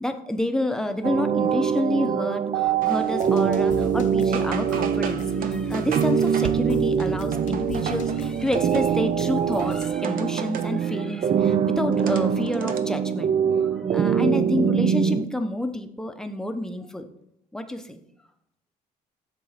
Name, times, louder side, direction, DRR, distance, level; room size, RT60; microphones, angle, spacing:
voice 1, 0.0-13.3 13.6-17.1 17.5-18.0, left 1 dB, 5° left, 6 dB, 0.7 m, -29 dB
sound 1, 1.0-15.3, right 8 dB, 40° right, 0.4 m, -24 dB
sound 2, 2.8-4.0 4.3-9.2 9.6-10.8 11.3-12.8, right 7 dB, 55° right, 0.7 m, -36 dB
sound 3, 2.9-9.9, left 8 dB, 50° left, 0.6 m, -39 dB
7.0 x 3.8 x 6.5 m, 0.74 s
cardioid pair, 110°, 17 cm